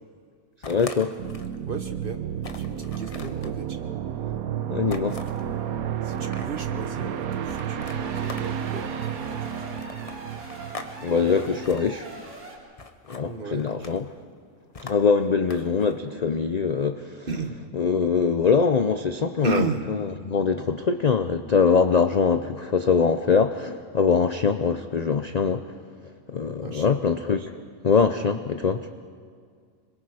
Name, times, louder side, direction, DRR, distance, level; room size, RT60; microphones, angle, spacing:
sound 1, 0.6-1.6 2.0-2.1 2.4-3.5 4.9-5.5 6.1-6.7 7.4-8.8 9.8-10.9 11.2-11.8 12.8-13.2 13.6-14.1 14.7-15.9, left 3 dB, 30° left, 0.9 m, -42 dB
voice 1, 0.7-1.2 4.7-5.2 11.0-12.1 13.1-14.0 14.8-17.3 17.8-19.6 20.3-28.9, left 5 dB, 50° left, 8 dB, 0.5 m, -23 dB
sound 2, 1.2-11.9, right 9 dB, 85° right, 1.3 m, -31 dB
voice 2, 1.6-2.2 2.6-3.9 6.0-9.9 13.2-13.7 17.3-17.7 19.4-19.9 26.6-27.0, right 4 dB, 40° right, 6 dB, 1.4 m, -34 dB
sound 3, 7.7-12.6, right 1 dB, 55° right, 3.6 m, -43 dB
26.5 x 22.0 x 4.9 m, 2.1 s
omnidirectional pair, 1.5 m